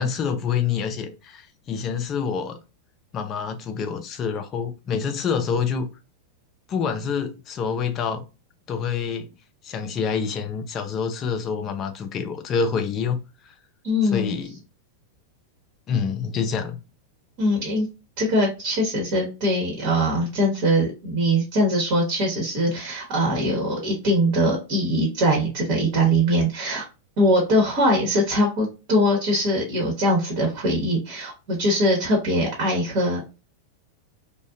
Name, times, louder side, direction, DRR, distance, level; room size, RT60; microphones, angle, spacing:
voice 1, 0.0-2.6 3.1-5.9 6.7-8.2 8.7-9.3 9.6-13.5 14.0-14.6 15.9-16.8, left 6 dB, 35° left, 0.4 m, -27 dB
voice 2, 13.8-14.4 17.4-17.9 18.2-26.9 27.2-33.2, equal, 55° right, 1.0 m, -22 dB
2.5 x 2.2 x 2.4 m
hypercardioid pair, 105°, 0 cm